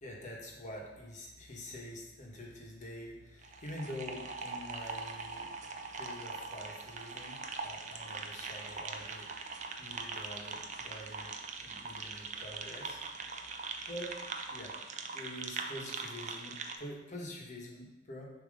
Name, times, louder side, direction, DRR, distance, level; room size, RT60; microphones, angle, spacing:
voice 1, 0.0-5.5 5.9-9.3 9.8-11.3 11.6-13.5 13.9-14.2 14.5-14.7 15.1-18.3, left 1 dB, 40° left, -1 dB, 1.2 m, -46 dB
sound 1, 3.4-16.8, right 4 dB, 40° right, 0.5 m, -42 dB
6.9 x 2.9 x 5.2 m, 0.97 s
head